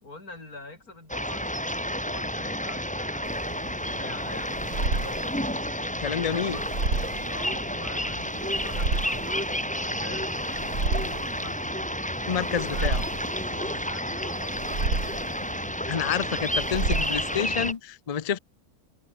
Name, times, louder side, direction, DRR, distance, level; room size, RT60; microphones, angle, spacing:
voice 1, 0.0-1.6 2.0-5.3 6.4-6.7 7.3-11.6 12.6-12.9 13.5-16.5 17.3-17.5, left 2 dB, 70° left, 5.7 m, -45 dB
sound 1, 1.1-17.7, equal, 5° left, 3.9 m, -31 dB
sound 2, 3.2-17.7, right 3 dB, 70° right, 4.8 m, -32 dB
voice 2, 6.0-6.6 12.3-13.0 15.9-18.4, left 8 dB, 45° left, 0.4 m, -28 dB
omnidirectional pair, 1.6 m